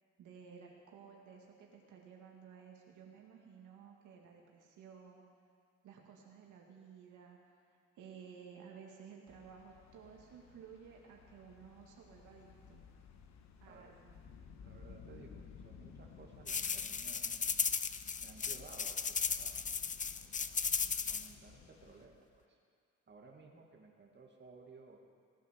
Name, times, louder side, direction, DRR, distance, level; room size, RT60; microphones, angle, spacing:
voice 1, 0.2-5.2 5.8-7.4 7.7-12.8 13.6-14.1, right 6 dB, 80° right, -1 dB, 2.1 m, -55 dB
sound 1, 9.3-22.1, left 6 dB, 65° left, 1.2 m, -57 dB
voice 2, 13.6-14.0 14.6-17.4 18.2-19.6 20.2-20.8 21.0-22.6 23.1-25.0, right 4 dB, 35° right, 0 dB, 2.2 m, -57 dB
sound 2, 16.5-21.3, left 6 dB, 25° left, 0.5 m, -36 dB
18.0 x 9.3 x 6.7 m, 2.2 s
cardioid pair, 90°, 30 cm